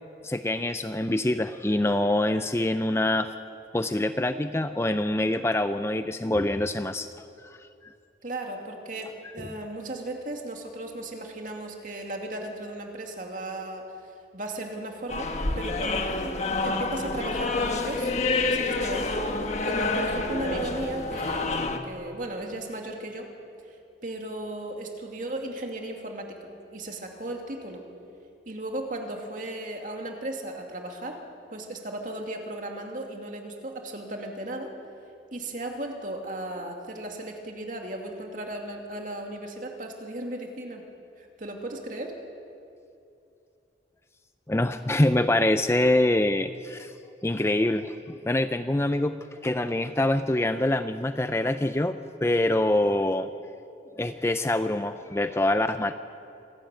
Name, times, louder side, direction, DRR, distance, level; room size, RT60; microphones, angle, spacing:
voice 1, 0.2-3.3 3.7-7.9 44.5-46.9 47.2-49.2 49.4-53.3 54.0-55.9, left 1 dB, 15° left, 10 dB, 0.5 m, -25 dB
voice 2, 8.2-13.9 14.3-18.1 18.4-23.3 23.6-23.8 24.0-27.8 28.5-31.2 31.5-34.7 35.3-40.8 41.2-42.2, right 1 dB, 45° right, 2 dB, 2.5 m, -36 dB
sound 1, 15.1-21.8, left 3 dB, 40° left, 1.3 m, -28 dB
26.5 x 12.5 x 9.1 m, 2.7 s
head